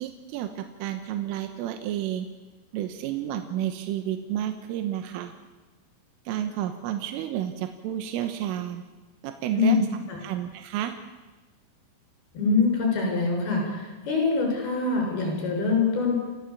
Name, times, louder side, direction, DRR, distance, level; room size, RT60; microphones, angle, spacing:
voice 1, 0.0-2.3 2.7-5.3 6.3-8.8 9.2-9.9 10.2-11.0, right 11 dB, 85° right, 8 dB, 3.8 m, -31 dB
voice 2, 12.3-16.2, left 4 dB, 50° left, 0 dB, 8.9 m, -24 dB
30.0 x 15.0 x 8.6 m, 1.2 s
omnidirectional pair, 5.7 m